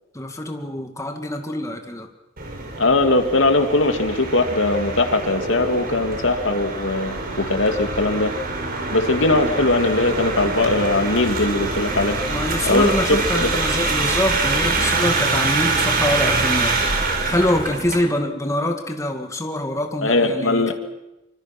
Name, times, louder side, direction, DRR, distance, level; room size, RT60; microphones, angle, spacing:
voice 1, 0.1-2.1 12.3-20.7, left 1 dB, 15° left, 4 dB, 2.4 m, -24 dB
sound 1, 2.4-18.0, right 3 dB, 50° right, 5.5 m, -25 dB
voice 2, 2.8-8.3 8.9-12.2 12.6-12.9 13.3-13.5 20.0-20.7, left 2 dB, 80° left, 7 dB, 2.5 m, -20 dB
26.0 x 25.5 x 6.1 m, 0.95 s
head